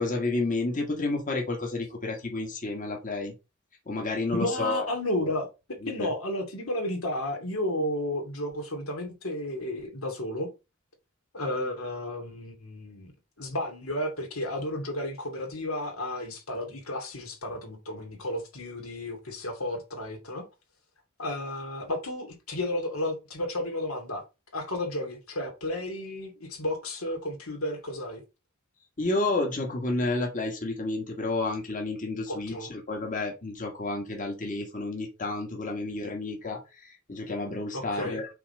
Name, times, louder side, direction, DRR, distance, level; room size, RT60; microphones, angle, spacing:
voice 1, 0.0-3.3 3.9-4.9 5.2-5.3 5.8-6.1 29.0-38.3, left 2 dB, 40° left, 1.6 m, -30 dB
voice 2, 4.4-5.5 5.9-10.5 11.3-13.1 13.4-20.5 21.2-24.2 24.5-28.2 32.3-32.7 37.7-38.2, left 1 dB, 85° left, 2.4 m, -32 dB
5.7 x 3.9 x 5.3 m
head